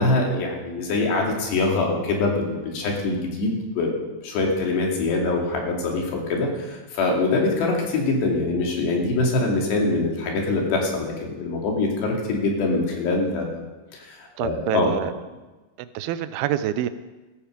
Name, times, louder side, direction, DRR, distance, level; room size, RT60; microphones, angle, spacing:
voice 1, 0.0-4.0 4.2-13.6 13.9-14.9, left 2 dB, 70° left, 0 dB, 4.7 m, -24 dB
voice 2, 14.4-15.1 15.8-16.9, right 12 dB, 80° right, 12 dB, 2.4 m, -26 dB
16.0 x 13.5 x 5.1 m, 1.2 s
omnidirectional pair, 5.1 m